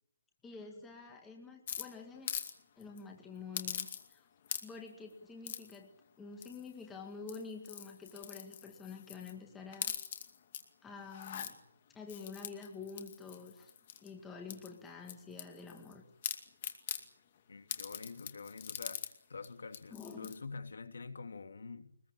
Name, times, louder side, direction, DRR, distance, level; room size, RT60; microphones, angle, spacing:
voice 1, 0.4-2.3 2.8-4.3 4.6-5.9 6.2-9.9 10.8-11.6 11.9-13.7 14.0-16.0 19.9-20.3, left 5 dB, 5° left, 2.0 m, -48 dB
sound 1, 1.7-2.5 2.8-3.0 3.5-4.2 4.4-4.9 5.4-5.8 6.4-6.8 7.2-9.3 9.7-10.6 11.0-11.5 12.1-14.1 14.5-15.9 16.2-17.0 17.7-19.1 19.4-19.5 19.7-20.4, left 9 dB, 25° left, 2.4 m, -42 dB
voice 2, 17.5-21.9, left 4 dB, 60° left, 3.0 m, -47 dB
24.0 x 21.0 x 8.6 m
hypercardioid pair, 180°, 0 cm